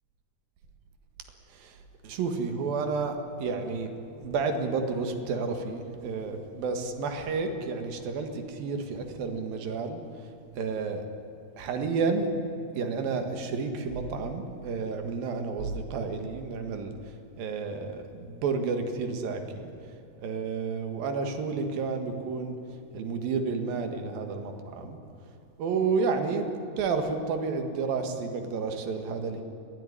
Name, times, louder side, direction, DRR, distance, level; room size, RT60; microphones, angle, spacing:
voice 1, 1.5-3.9 4.2-10.0 10.5-11.1 11.6-12.3 12.7-16.9 17.4-19.7 20.2-22.6 22.9-25.0 25.6-26.5 26.8-29.4, right 4 dB, 70° right, 6 dB, 3.4 m, -31 dB
21.0 x 16.5 x 9.9 m, 2.9 s
omnidirectional pair, 4.5 m